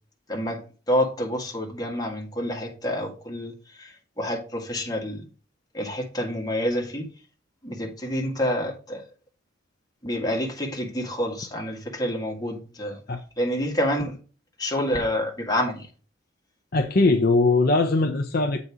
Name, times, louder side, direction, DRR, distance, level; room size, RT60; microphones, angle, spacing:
voice 1, 0.3-0.6 0.9-5.2 5.7-7.1 7.6-9.0 10.0-13.0 13.4-14.2 14.6-15.9, equal, 20° left, 1.8 m, -28 dB
voice 2, 16.7-18.6, left 3 dB, 50° left, 0.6 m, -20 dB
7.9 x 4.2 x 4.8 m
head